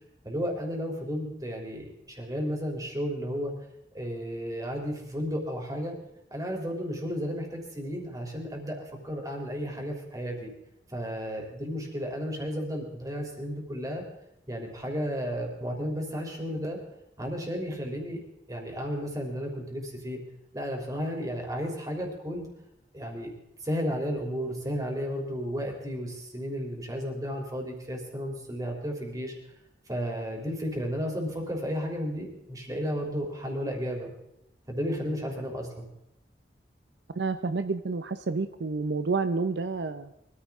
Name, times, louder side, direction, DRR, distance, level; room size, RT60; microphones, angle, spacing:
voice 1, 0.2-3.5 3.9-5.9 6.3-10.5 10.9-14.0 14.5-16.8 17.2-18.2 18.5-20.2 20.5-22.5 22.9-23.3 23.6-29.3 29.9-34.1 34.7-35.9, equal, 20° right, 1 dB, 3.3 m, -33 dB
voice 2, 37.1-40.1, right 4 dB, 75° right, 10 dB, 0.6 m, -29 dB
23.0 x 14.0 x 3.6 m, 0.84 s
head